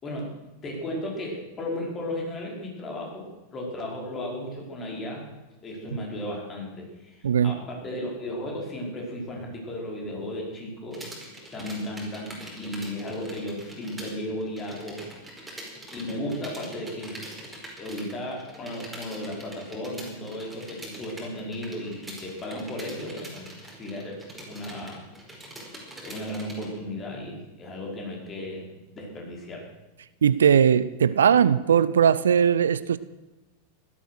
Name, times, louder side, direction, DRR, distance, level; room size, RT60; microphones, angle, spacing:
voice 1, 0.0-5.3 5.6-11.1 11.5-15.1 15.9-17.2 17.8-25.0 26.0-29.7, left 1 dB, 25° left, 0 dB, 5.0 m, -35 dB
voice 2, 7.2-7.5 30.2-33.0, right 8 dB, 65° right, 17 dB, 0.5 m, -19 dB
sound 1, 10.9-14.1 14.4-26.7, right 1 dB, 5° right, 4.9 m, -43 dB
16.0 x 13.0 x 6.4 m, 1.1 s
figure-of-eight pair, 90°, 0 cm